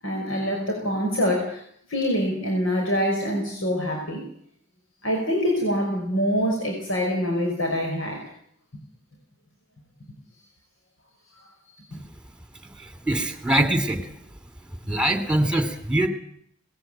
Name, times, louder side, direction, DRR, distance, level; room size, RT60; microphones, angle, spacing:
voice 1, 0.0-1.6 1.9-4.2 5.0-8.2, equal, 85° left, 1 dB, 5.6 m, -25 dB
voice 2, 12.8-14.1 14.9-16.1, right 1 dB, 5° right, 8 dB, 2.8 m, -23 dB
20.0 x 17.0 x 9.2 m, 0.67 s
head